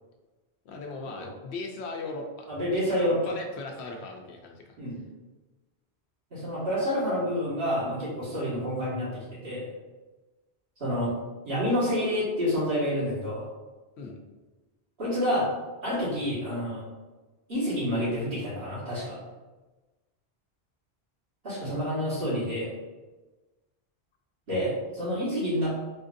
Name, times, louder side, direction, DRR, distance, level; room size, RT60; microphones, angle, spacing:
voice 1, 0.6-4.8 14.0-14.2, left 3 dB, 90° left, 2 dB, 0.9 m, -38 dB
voice 2, 2.5-3.2 4.8-5.0 6.3-9.7 10.8-11.2 11.5-13.5 15.0-15.5 15.8-16.9 17.5-19.2 21.4-22.7 24.5-25.7, equal, 65° right, -10 dB, 1.8 m, -28 dB
4.3 x 2.6 x 2.5 m, 1.2 s
omnidirectional pair, 1.1 m